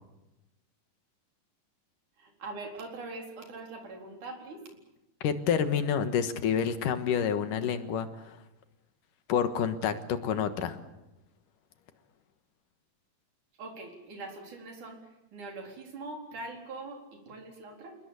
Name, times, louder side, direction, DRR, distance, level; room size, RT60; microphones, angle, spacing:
voice 1, 2.2-4.6 13.6-15.0 15.3-18.0, right 3 dB, 70° right, 2 dB, 5.6 m, -42 dB
voice 2, 5.2-8.4 9.3-10.8, left 7 dB, 85° left, 10 dB, 3.0 m, -28 dB
28.5 x 20.0 x 8.4 m, 0.96 s
omnidirectional pair, 3.7 m